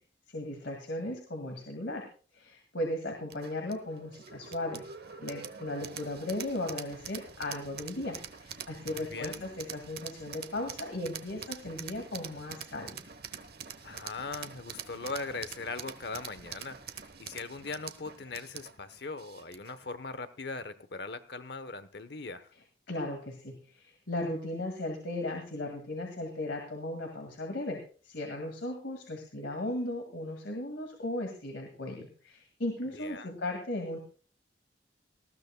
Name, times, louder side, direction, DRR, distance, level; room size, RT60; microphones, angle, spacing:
voice 1, 0.3-2.0 2.3-4.8 5.2-13.0 22.9-34.0, left 1 dB, 80° left, 2 dB, 2.1 m, -36 dB
sound 1, 3.3-19.8, right 7 dB, 55° right, 0.9 m, -45 dB
voice 2, 8.9-9.5 13.8-22.5 32.9-33.4, left 3 dB, 60° left, 12 dB, 0.9 m, -40 dB
19.0 x 14.5 x 2.2 m, 0.40 s
head